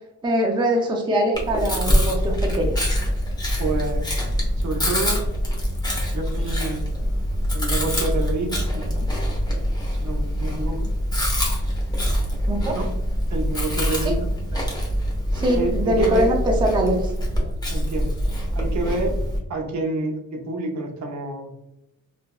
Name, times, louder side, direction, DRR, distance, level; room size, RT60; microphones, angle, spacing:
voice 1, 0.2-2.8 12.5-12.8 14.1-14.2 15.3-17.1, right 1 dB, 15° right, 1 dB, 0.5 m, -22 dB
Chewing mastication, 1.3-19.4, equal, 10° left, 0.9 m, -24 dB
voice 2, 3.6-4.1 4.6-5.2 6.1-6.8 7.5-9.1 10.0-10.9 12.7-12.9 13.3-14.3 15.4-16.4 17.7-18.1 18.5-19.2 19.5-21.6, right 3 dB, 55° right, 2 dB, 0.8 m, -28 dB
2.9 x 2.6 x 2.2 m, 0.88 s
cardioid pair, 85°, 34 cm